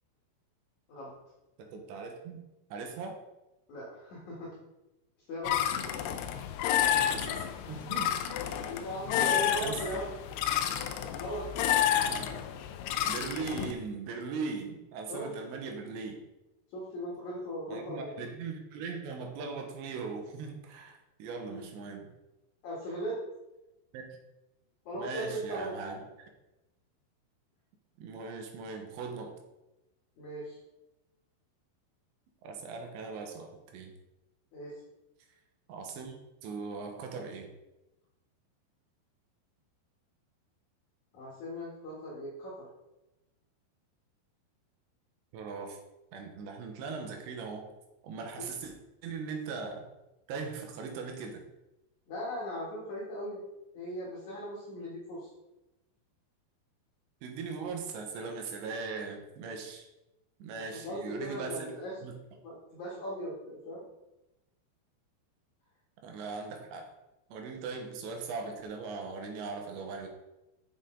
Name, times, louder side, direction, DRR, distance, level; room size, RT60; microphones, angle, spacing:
voice 1, 1.6-2.4 2.7-3.2 6.9-8.6 9.2-9.8 11.9-12.4 13.1-16.2 17.7-22.1 23.9-24.2 24.9-26.0 28.0-29.3 32.4-33.9 35.7-36.1 36.4-37.5 45.3-45.8 46.1-47.7 48.0-48.7 49.0-49.9 50.3-51.4 57.2-59.9 60.4-61.7 62.0-62.1 66.0-66.9 67.3-70.1, right 4 dB, 75° right, 3 dB, 3.3 m, -39 dB
voice 2, 3.7-4.6 5.3-6.0 8.7-10.1 11.2-11.5 15.1-15.3 16.7-18.2 21.5-21.6 22.6-23.2 24.9-25.8 30.2-30.6 34.5-34.8 41.1-42.7 48.4-48.5 52.1-53.4 53.7-55.3 60.6-62.0 62.4-63.8, equal, 55° left, -5 dB, 2.4 m, -38 dB
sound 1, 5.4-13.7, left 10 dB, 85° left, 2.3 m, -30 dB
7.8 x 7.2 x 3.8 m, 0.97 s
omnidirectional pair, 5.3 m